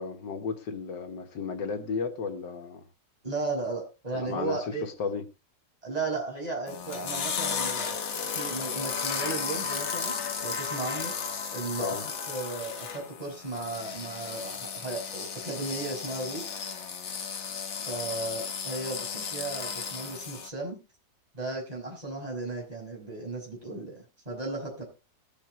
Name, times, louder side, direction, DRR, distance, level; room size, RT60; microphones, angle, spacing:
voice 1, 0.0-2.8 4.1-5.2 11.8-12.0, left 5 dB, 80° left, 6 dB, 1.9 m, -34 dB
voice 2, 3.2-4.9 5.8-8.0 8.3-10.2 10.4-11.9 12.3-16.4 17.9-20.8 21.3-24.8, right 3 dB, 20° right, -1 dB, 5.6 m, -35 dB
sound 1, 6.7-20.5, left 6 dB, 45° left, 1.2 m, -34 dB
20.0 x 8.2 x 3.0 m, 0.30 s
omnidirectional pair, 1.9 m